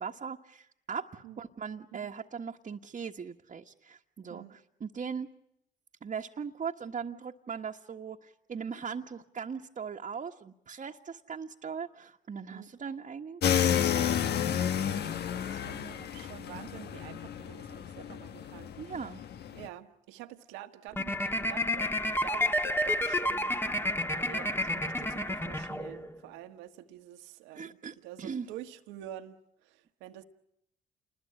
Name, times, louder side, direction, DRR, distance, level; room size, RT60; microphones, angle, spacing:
voice 1, 0.0-5.3 6.0-14.2 18.8-19.2 27.5-28.5, right 6 dB, 45° right, 1.5 m, -39 dB
sound 1, 13.4-19.7, left 9 dB, 65° left, 1.2 m, -31 dB
voice 2, 14.5-19.1 19.5-27.8 28.0-30.2, right 13 dB, 85° right, 1.6 m, -48 dB
sound 2, 20.9-26.2, left 1 dB, 10° left, 1.6 m, -30 dB
28.5 x 21.0 x 8.8 m
supercardioid pair, 60°, 19 cm